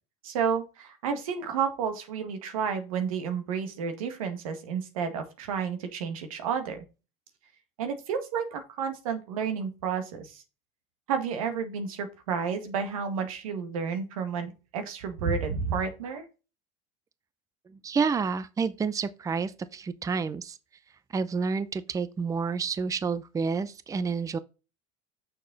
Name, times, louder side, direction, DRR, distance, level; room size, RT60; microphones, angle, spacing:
voice 1, 0.2-6.8 7.8-10.4 11.1-16.2, right 6 dB, 90° right, 1.9 m, -31 dB
voice 2, 17.7-20.6 21.1-24.4, right 5 dB, 20° right, 0.6 m, -29 dB
6.5 x 6.4 x 4.0 m
supercardioid pair, 105°, 17 cm